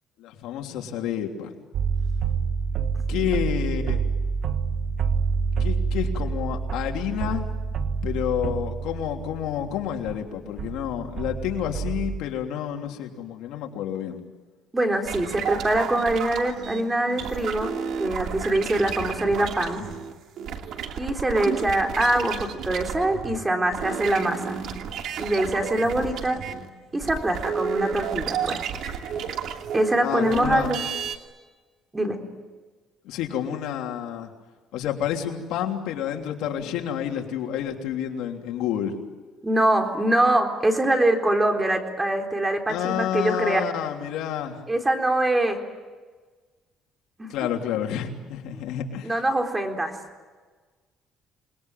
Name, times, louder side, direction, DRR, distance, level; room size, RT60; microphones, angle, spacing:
voice 1, 0.2-1.5 3.1-4.0 5.6-7.5 8.0-14.2 30.0-30.7 33.0-34.3 34.7-39.0 42.7-44.6 47.3-49.1, left 9 dB, 85° left, 2 dB, 3.3 m, -29 dB
sound 1, 1.7-10.2 10.6-12.2, right 5 dB, 50° right, 1.5 m, -28 dB
voice 2, 14.7-17.7 18.0-19.8 21.0-24.6 25.2-26.4 26.9-28.7 29.7-30.8 31.9-32.2 39.4-43.7 44.7-45.6 47.2-47.5 48.5-48.6 49.0-50.0, right 1 dB, 15° right, 3 dB, 3.9 m, -24 dB
sound 2, 15.0-23.4 23.6-31.2, right 7 dB, 65° right, 2.7 m, -32 dB
28.5 x 21.0 x 9.3 m, 1.4 s
cardioid pair, 130°, 0 cm